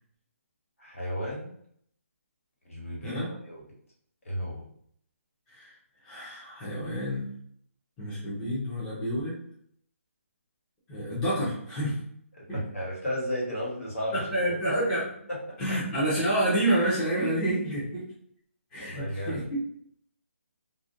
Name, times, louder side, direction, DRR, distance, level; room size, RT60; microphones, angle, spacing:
voice 1, 0.8-1.5 2.6-3.6 4.2-4.6 12.3-14.3 14.6-14.7 15.3-15.4 18.8-19.5, equal, 75° left, -4 dB, 1.3 m, -34 dB
voice 2, 6.0-7.3 8.0-9.4 10.9-12.0 12.5-12.6 14.1-15.1 15.6-18.0 18.7-19.6, right 1 dB, 5° left, -10 dB, 0.4 m, -28 dB
2.3 x 2.1 x 2.5 m, 0.67 s
hypercardioid pair, 170°, 8 cm